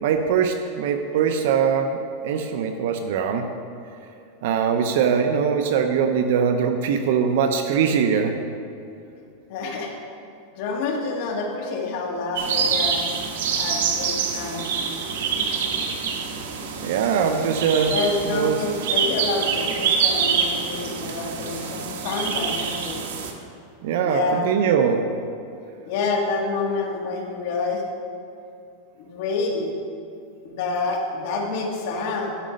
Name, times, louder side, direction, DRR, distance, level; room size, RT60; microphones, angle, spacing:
voice 1, 0.0-2.0 2.2-3.5 4.4-8.3 16.8-17.9 18.2-18.6 23.8-25.1, right 7 dB, 60° right, 6 dB, 0.6 m, -22 dB
voice 2, 9.5-9.9 10.5-13.0 13.6-14.7 15.4-15.6 17.9-23.0 24.0-24.6 25.9-27.8 29.0-29.7 30.4-32.3, left 3 dB, 50° left, 0 dB, 1.5 m, -28 dB
sound 1, 12.4-23.3, right 6 dB, 80° right, 1.0 m, -26 dB
11.5 x 5.2 x 5.2 m, 2.6 s
supercardioid pair, 165°, 0 cm